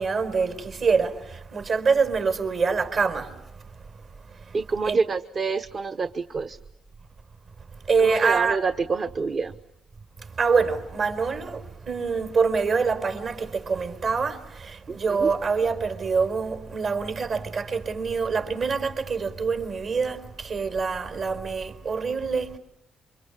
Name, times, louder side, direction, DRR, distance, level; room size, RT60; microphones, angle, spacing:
voice 1, 0.0-3.3 4.8-5.0 7.9-8.6 10.4-22.6, right 5 dB, 60° right, 4.5 m, -25 dB
voice 2, 4.5-6.6 8.0-9.5 14.9-15.3, right 4 dB, 45° right, 1.0 m, -27 dB
28.5 x 25.0 x 8.4 m
cardioid pair, 90°, 0 cm